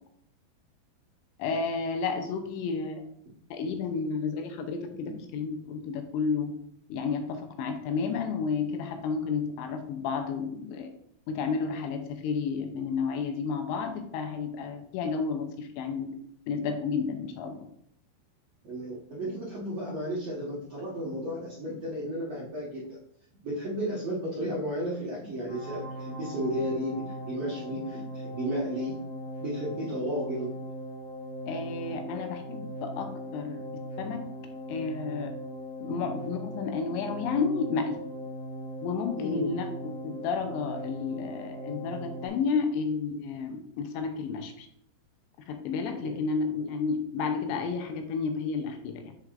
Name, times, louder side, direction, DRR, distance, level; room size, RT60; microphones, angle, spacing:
voice 1, 1.4-3.0 3.5-6.5 6.9-10.9 11.3-16.2 16.5-17.7 31.5-33.6 34.0-34.2 34.7-35.3 35.8-38.0 38.8-44.7 45.5-49.1, left 5 dB, 80° left, 5 dB, 2.8 m, -31 dB
voice 2, 18.6-22.8 23.4-29.0 29.4-30.5 35.9-36.0 39.2-39.5 45.9-46.2, equal, 80° right, -7 dB, 1.4 m, -33 dB
sound 1, 25.5-42.3, equal, 45° left, 2.0 m, -39 dB
7.3 x 6.3 x 2.5 m, 0.69 s
omnidirectional pair, 5.4 m